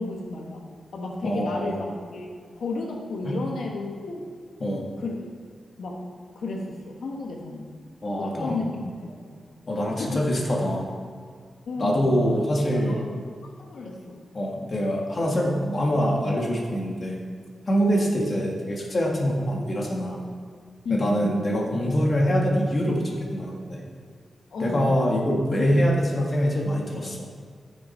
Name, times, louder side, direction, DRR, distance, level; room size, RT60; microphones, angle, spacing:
voice 1, 0.0-4.3 5.0-5.3 5.8-7.7 8.2-9.3 9.9-10.3 11.6-12.2 12.7-14.2 17.9-18.2 20.8-21.3 24.5-24.9, left 3 dB, 85° left, 0 dB, 1.4 m, -33 dB
voice 2, 1.2-1.8 3.3-3.4 4.6-4.9 8.0-8.7 9.7-10.9 11.8-13.0 14.3-17.2 17.7-20.2 20.9-23.8 24.6-27.3, equal, 35° left, -2 dB, 2.0 m, -24 dB
11.5 x 9.7 x 4.5 m, 2.1 s
wide cardioid pair, 140°, 0 cm